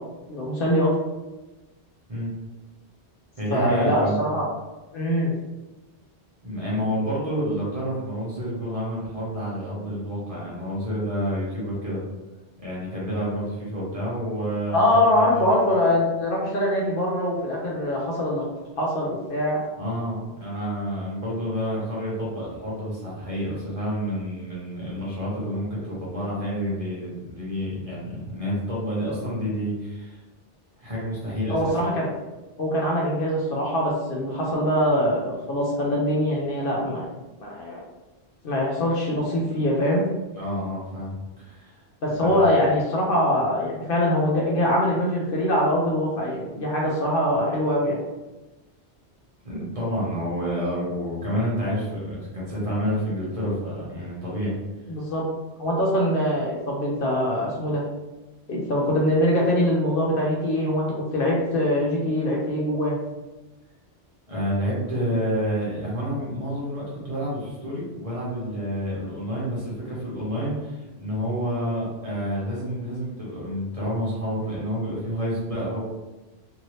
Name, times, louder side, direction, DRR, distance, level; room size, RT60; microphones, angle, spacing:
voice 1, 0.3-0.9 3.5-4.5 4.9-5.3 14.7-18.4 18.8-19.6 31.5-32.1 32.6-37.0 37.4-37.8 38.4-40.0 42.0-48.0 54.9-55.2 55.6-57.8 58.5-60.8 61.1-63.0, left 1 dB, 60° left, -3 dB, 0.7 m, -23 dB
voice 2, 3.4-4.2 6.4-12.0 12.6-15.5 19.8-30.2 30.8-31.7 40.3-41.8 42.2-42.4 49.4-54.5 64.3-75.8, equal, 35° right, -7 dB, 0.9 m, -29 dB
2.7 x 2.6 x 3.1 m, 1.1 s
omnidirectional pair, 1.2 m